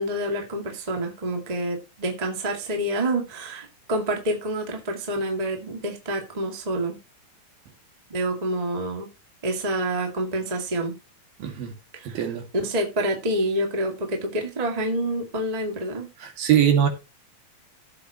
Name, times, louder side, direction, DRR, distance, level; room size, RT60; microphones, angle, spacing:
voice 1, 0.0-7.0 8.1-9.1 9.4-10.9 11.9-12.2 12.5-16.1, right 1 dB, 15° right, 1.4 m, -27 dB
voice 2, 11.4-11.7 12.1-12.4 16.2-16.9, right 9 dB, 75° right, 3.9 m, -21 dB
15.0 x 7.7 x 3.0 m
omnidirectional pair, 4.1 m